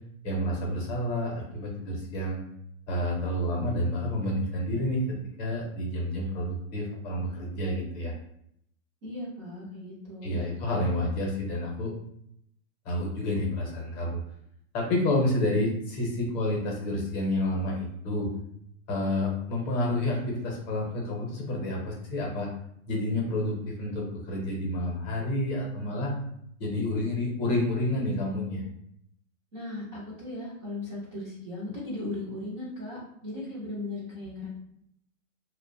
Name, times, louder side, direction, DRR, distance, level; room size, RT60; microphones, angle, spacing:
voice 1, 0.2-2.4 2.9-5.0 5.4-8.1 10.2-11.9 12.8-14.2 14.7-18.3 18.9-22.5 22.9-26.1 26.6-28.6, left 1 dB, 30° left, -1 dB, 0.7 m, -29 dB
voice 2, 9.0-10.4 29.5-34.5, left 2 dB, 20° right, -9 dB, 0.4 m, -37 dB
2.6 x 2.1 x 2.5 m, 0.72 s
hypercardioid pair, 145°, 43 cm